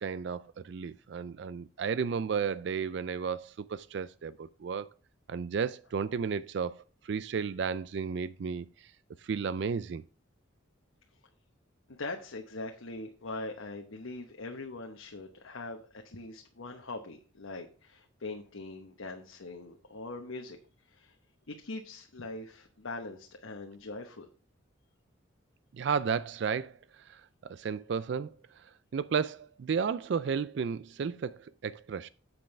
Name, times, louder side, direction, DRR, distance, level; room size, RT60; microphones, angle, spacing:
voice 1, 0.0-4.9 5.3-8.9 9.2-10.0 25.7-32.1, right 6 dB, 60° right, 0.3 m, -33 dB
voice 2, 11.9-21.2 21.5-24.3, left 2 dB, 90° left, 1.0 m, -42 dB
8.8 x 7.7 x 3.2 m
head